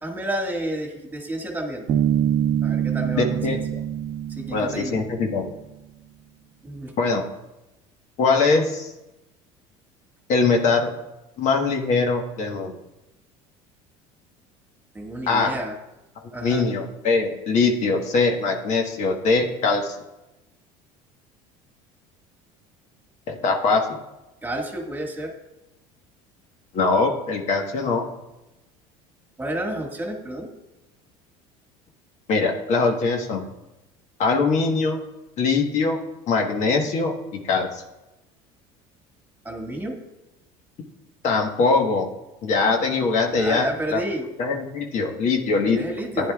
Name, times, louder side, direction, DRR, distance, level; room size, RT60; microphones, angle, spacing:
voice 1, 0.0-1.8 2.6-3.6 4.3-5.0 6.6-6.9 14.9-15.8 16.3-16.6 24.4-25.3 29.4-30.5 39.4-40.0 43.3-44.3 45.7-46.3, right 1 dB, 15° right, 0 dB, 1.7 m, -30 dB
Bass guitar, 1.9-5.6, right 10 dB, 45° right, 0.7 m, -25 dB
voice 2, 3.2-3.6 4.5-5.5 7.0-7.2 8.2-8.9 10.3-10.9 11.4-12.7 15.3-15.5 16.4-20.0 23.3-23.9 26.7-28.0 32.3-33.4 34.2-35.0 35.4-36.0 36.3-37.8 41.2-42.1 42.4-44.0 44.4-45.8 46.2-46.3, left 4 dB, 55° left, 3 dB, 1.3 m, -22 dB
14.0 x 10.0 x 2.4 m, 0.98 s
supercardioid pair, 105°, 15 cm